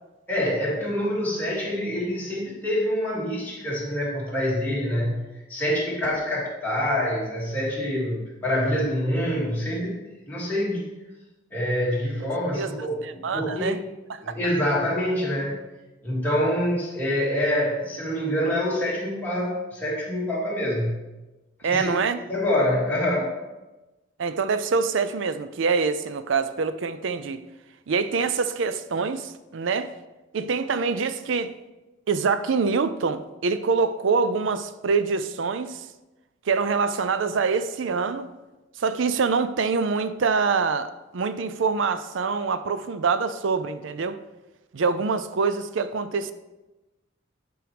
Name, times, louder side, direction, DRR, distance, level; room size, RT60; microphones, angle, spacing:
voice 1, 0.3-5.2 5.5-10.0 10.3-10.9 11.5-13.8 14.2-15.6 16.0-20.9 21.6-21.9 22.3-23.4, left 1 dB, 10° left, 2.4 m, -26 dB
voice 2, 13.0-13.8 14.1-14.2 21.6-22.2 24.2-27.4 27.9-29.9 30.3-31.5 32.1-35.9 36.5-38.3 38.8-44.2 44.7-46.3, right 5 dB, 75° right, 0.5 m, -25 dB
11.0 x 4.6 x 3.4 m
head